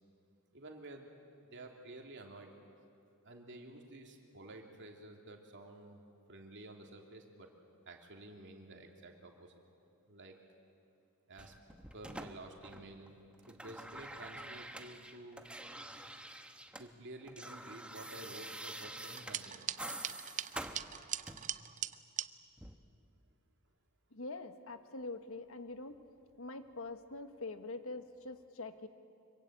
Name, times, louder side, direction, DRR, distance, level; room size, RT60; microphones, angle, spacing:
voice 1, 0.5-1.1 1.4-2.5 3.2-7.5 7.8-9.5 10.1-10.4 11.3-11.5 11.9-13.2 13.5-15.4 16.8-19.7, right 2 dB, 55° right, 2 dB, 3.0 m, -51 dB
sound 1, 11.4-13.1 13.3-16.9 17.1-21.6 22.6-22.7, right 1 dB, 5° right, 1.1 m, -47 dB
sound 2, 19.0-22.3, right 10 dB, 35° right, 0.6 m, -41 dB
voice 2, 24.1-26.0 26.4-28.9, left 3 dB, 70° left, 9 dB, 1.3 m, -44 dB
25.0 x 23.5 x 8.9 m, 2.6 s
head